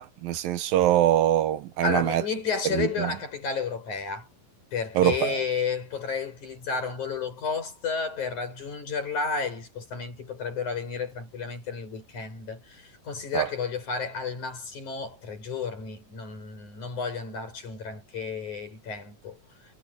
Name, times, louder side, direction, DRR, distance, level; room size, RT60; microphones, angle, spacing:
voice 1, 0.0-2.2 2.7-3.1 5.0-5.4 13.3-13.5, right 12 dB, 75° right, 3.0 m, -23 dB
voice 2, 1.8-4.3 4.7-19.4, left 5 dB, 55° left, 7.6 m, -32 dB
omnidirectional pair, 4.1 m